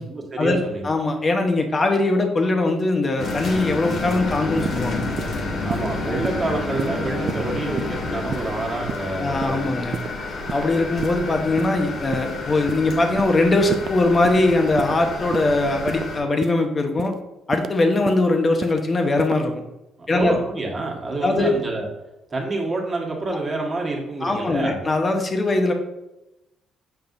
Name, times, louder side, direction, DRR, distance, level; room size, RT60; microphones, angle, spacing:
voice 1, 0.1-0.9 5.6-9.7 20.1-21.9 22.3-24.8, right 2 dB, 30° right, 0 dB, 1.6 m, -27 dB
voice 2, 0.8-5.0 9.2-9.9 10.5-17.1 17.5-19.5 20.1-20.4 21.2-21.5 24.2-25.7, left 2 dB, 30° left, 4 dB, 1.0 m, -21 dB
sound 1, 3.2-16.2, left 3 dB, 60° left, 1.4 m, -29 dB
sound 2, 4.6-4.8 5.2-5.3 5.7-5.9 6.2-6.4 6.8-6.9 7.3-7.4 7.8-7.9 8.3-8.5 8.9-9.1 9.4-9.6 9.9-10.1 10.5-10.7 11.0-11.2 11.6-11.7 12.1-12.3 12.7-12.8 13.2-13.4 13.7-13.9 14.2-14.4 14.8-14.9 15.3-15.5 15.9-16.0 16.4-16.6 17.0-17.1 17.5-17.7 18.1-18.2 18.6-18.8 19.2-19.4, right 7 dB, 55° right, 0.3 m, -30 dB
6.9 x 5.5 x 2.7 m, 0.94 s
cardioid pair, 115°, 0 cm